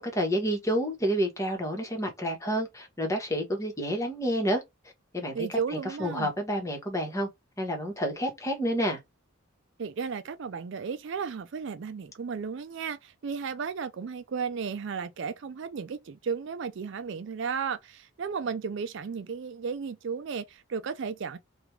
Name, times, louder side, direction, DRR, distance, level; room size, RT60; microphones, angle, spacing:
voice 1, 0.0-4.6 5.1-5.6 6.0-7.3 7.6-9.0, equal, 15° left, 1.1 m, -29 dB
voice 2, 5.3-6.3 9.8-21.4, right 6 dB, 55° right, 0.4 m, -34 dB
3.4 x 2.4 x 4.4 m
head